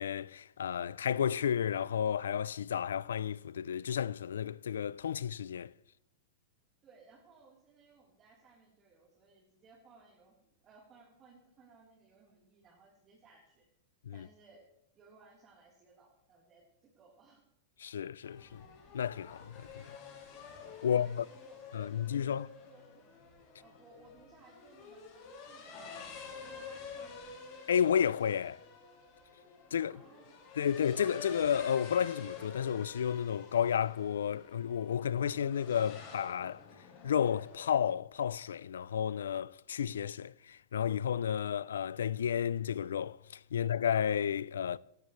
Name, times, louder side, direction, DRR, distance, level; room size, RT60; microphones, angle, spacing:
voice 1, 0.0-5.7 14.0-14.3 17.8-18.6 18.9-19.9 20.8-21.3 21.7-22.5 27.7-28.6 29.7-30.0 30.6-36.7 37.0-44.8, left 8 dB, 85° left, 0.4 m, -32 dB
voice 2, 6.8-13.7 14.1-14.7 14.9-17.4 20.8-21.6 22.0-23.2 23.6-27.2 29.8-30.4 43.5-43.7, right 3 dB, 30° right, 3.7 m, -61 dB
sound 1, 18.2-37.7, left 5 dB, 50° left, 6.4 m, -49 dB
17.0 x 14.5 x 3.2 m
hypercardioid pair, 125°, 0 cm